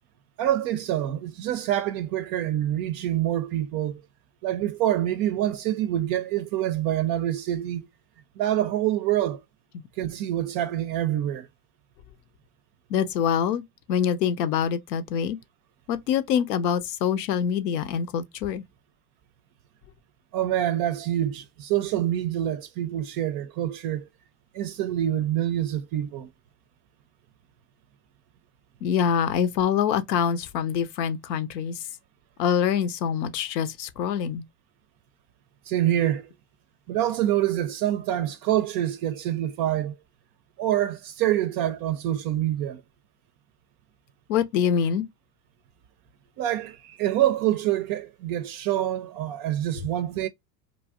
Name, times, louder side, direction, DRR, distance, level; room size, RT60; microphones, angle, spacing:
voice 1, 0.4-4.0 4.4-7.9 8.4-9.4 10.0-11.5 20.3-24.1 24.5-26.3 35.7-36.3 36.9-40.0 40.6-42.8 46.4-50.3, right 12 dB, 45° right, 0.5 m, -26 dB
voice 2, 12.9-13.6 13.9-15.4 15.9-18.6 28.8-31.8 32.4-34.4 44.3-45.1, left 8 dB, 80° left, 0.7 m, -25 dB
2.5 x 2.0 x 3.5 m
hypercardioid pair, 90°, 50 cm